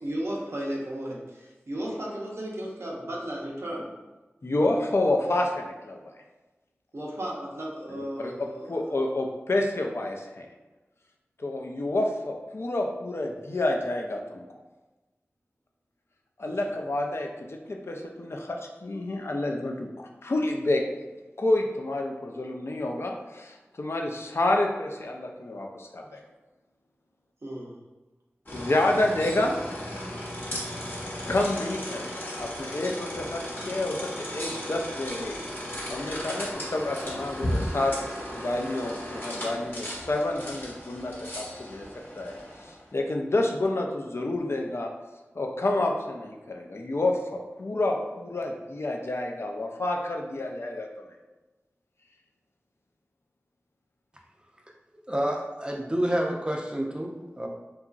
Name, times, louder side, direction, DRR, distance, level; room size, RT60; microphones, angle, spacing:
voice 1, 0.0-3.9 6.9-8.8 16.4-16.5 27.4-27.8 32.8-32.9, right 1 dB, 75° right, -3 dB, 0.6 m, -35 dB
voice 2, 4.4-6.1 7.9-10.5 11.4-14.4 16.4-20.8 21.4-26.2 28.5-29.6 31.3-35.4 35.9-37.9 38.3-41.9 42.2-44.9 45.4-50.9, left 2 dB, 65° left, 1 dB, 0.4 m, -29 dB
sound 1, 28.4-42.9, equal, 50° left, 0.9 m, -35 dB
voice 3, 55.1-57.5, right 1 dB, 20° right, 1 dB, 0.4 m, -28 dB
2.9 x 2.4 x 2.4 m, 1.2 s
wide cardioid pair, 40°, 5 cm